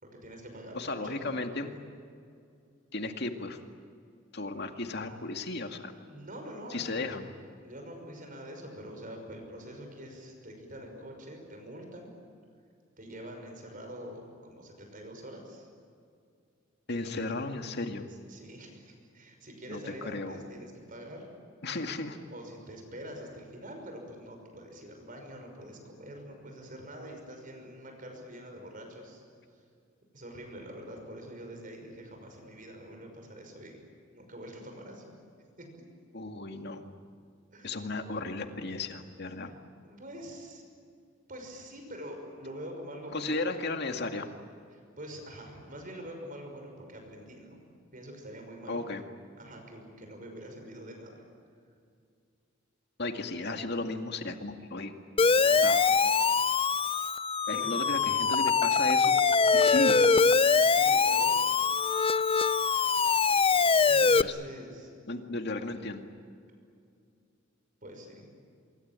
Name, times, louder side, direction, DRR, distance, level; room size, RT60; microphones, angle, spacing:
voice 1, 0.0-1.7 6.0-7.0 7.6-12.1 13.0-15.7 16.9-17.3 18.3-21.3 22.3-29.2 30.1-33.8 34.1-35.1 35.6-35.7 37.5-37.8 39.4-39.6 39.8-40.6 41.3-43.5 44.7-47.6 47.9-48.8 49.4-51.2 55.3-55.7 57.5-57.8 59.6-59.9 60.4-61.4 63.9-64.9 67.8-68.3, equal, 40° right, 3 dB, 5.9 m, -45 dB
voice 2, 0.7-1.7 2.9-3.6 4.3-5.9 6.7-7.3 16.9-18.1 19.7-20.4 21.6-22.2 36.1-36.9 37.6-39.5 43.1-44.3 48.7-49.0 53.0-54.9 55.6-55.9 57.5-59.2 59.5-60.0 64.0-64.3 65.1-66.1, left 2 dB, 55° left, 5 dB, 2.2 m, -35 dB
Siren, 55.2-64.2, left 5 dB, 30° left, 0.6 m, -23 dB
25.5 x 23.5 x 9.1 m, 2.4 s
head